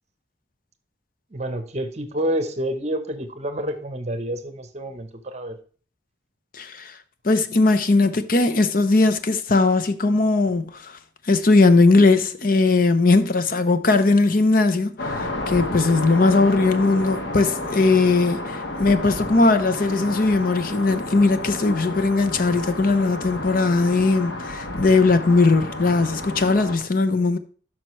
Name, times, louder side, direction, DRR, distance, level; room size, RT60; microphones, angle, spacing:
voice 1, 1.3-5.6, right 1 dB, 35° right, 0.9 m, -28 dB
voice 2, 6.5-6.9 7.2-10.9 11.3-27.4, left 3 dB, 50° left, 0.7 m, -19 dB
sound 1, 15.0-26.8, left 1 dB, 75° left, 1.4 m, -31 dB
12.0 x 5.9 x 3.2 m
head